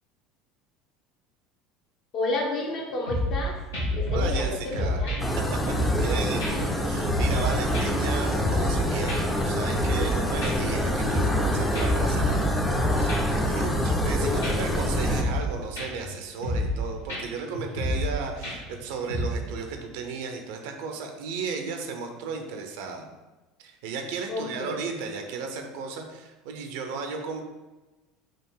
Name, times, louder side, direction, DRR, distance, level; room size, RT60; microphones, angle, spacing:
voice 1, 2.1-3.6 3.9-5.3 5.8-6.2 6.6-6.9 14.2-14.7 24.3-24.9, left 2 dB, 50° left, -2 dB, 1.1 m, -32 dB
sound 1, 3.1-3.4 3.7-4.4 4.7-6.1 6.4-6.5 6.9-7.5 7.7-8.8 9.1-9.2 9.5-10.1 10.4-11.4 11.7-13.4 13.7-14.1 14.4-14.5 14.9-15.5 15.8-16.1 16.4-16.8 17.1-17.2 17.5-18.1 18.4-18.8 19.1-19.2, left 1 dB, 80° left, 1.3 m, -28 dB
voice 2, 4.1-5.0 5.8-12.5 12.9-23.1 23.6-27.4, right 5 dB, 65° right, 4 dB, 0.6 m, -34 dB
sound 2, 5.2-15.2, equal, 10° left, 0.6 m, -26 dB
3.6 x 2.5 x 4.6 m, 1.1 s
figure-of-eight pair, 70°, 0 cm